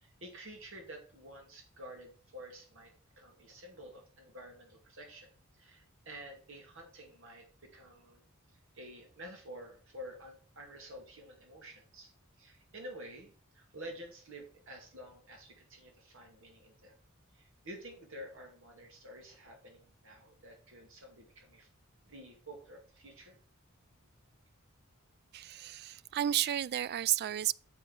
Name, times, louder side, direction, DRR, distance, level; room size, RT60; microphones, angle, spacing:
voice 1, 0.0-8.2 8.7-12.1 12.4-17.0 17.3-21.7 22.1-23.4, equal, 65° right, 2.2 m, -50 dB
voice 2, 25.3-27.5, right 12 dB, 50° right, 0.3 m, -32 dB
7.5 x 5.4 x 5.8 m
head